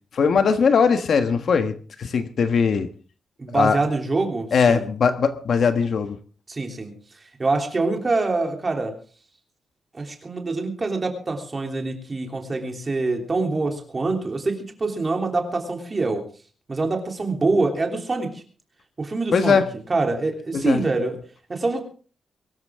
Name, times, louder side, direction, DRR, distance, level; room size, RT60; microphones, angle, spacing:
voice 1, 0.1-2.9 3.5-3.8 4.5-6.2 19.3-19.7 20.5-20.8, left 5 dB, 55° left, 8 dB, 1.3 m, -20 dB
voice 2, 3.4-4.9 6.5-6.9 7.2-8.9 9.9-16.2 16.7-18.4 19.0-19.6 19.9-21.2 21.5-21.8, right 3 dB, 25° right, 3 dB, 3.2 m, -25 dB
23.5 x 13.5 x 3.7 m, 0.40 s
wide cardioid pair, 165°, 0 cm